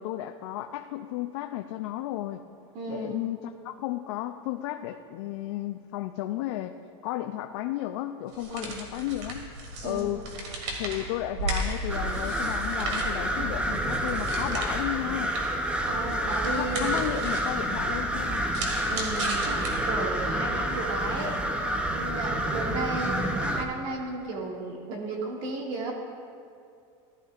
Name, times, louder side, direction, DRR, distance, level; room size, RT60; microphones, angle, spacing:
voice 1, 0.0-2.4 2.9-6.8 7.0-9.5 9.8-10.2 10.8-15.3 16.6-18.5, left 14 dB, 70° left, 6 dB, 0.4 m, -33 dB
voice 2, 2.7-3.2 8.5-8.8 9.8-10.1 15.8-16.9 18.9-25.9, right 3 dB, 55° right, -1 dB, 2.0 m, -34 dB
sound 1, 8.3-20.2, right 1 dB, 80° right, 2.2 m, -36 dB
sound 2, 11.9-23.6, right 1 dB, 10° right, 0.6 m, -29 dB
15.0 x 12.0 x 2.4 m, 2.4 s
supercardioid pair, 145°, 15 cm